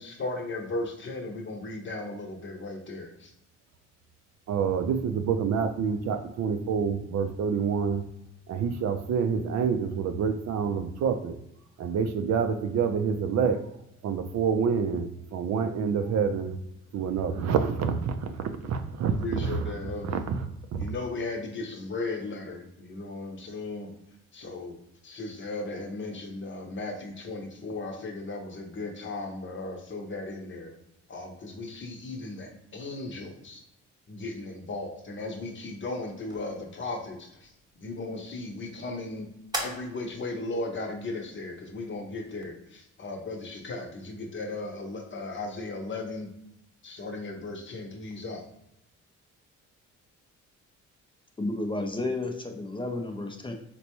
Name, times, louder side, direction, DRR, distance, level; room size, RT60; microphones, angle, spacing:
voice 1, 0.0-3.3 19.2-20.2 20.8-23.9 24.3-24.8 25.0-30.7 31.1-33.6 34.1-37.5 37.8-39.3 39.6-46.3 46.8-48.4, left 2 dB, 40° left, 0.8 m, -36 dB
voice 2, 4.5-8.0 8.5-11.4 11.8-13.7 14.0-16.6 16.9-19.7 20.0-20.4 20.7-20.8, right 6 dB, 60° right, 0.4 m, -27 dB
sound 1, 36.0-43.0, equal, 15° right, 1.0 m, -43 dB
voice 3, 51.4-53.5, left 2 dB, 15° left, 0.4 m, -32 dB
4.0 x 2.2 x 2.9 m
cardioid pair, 90°, 30 cm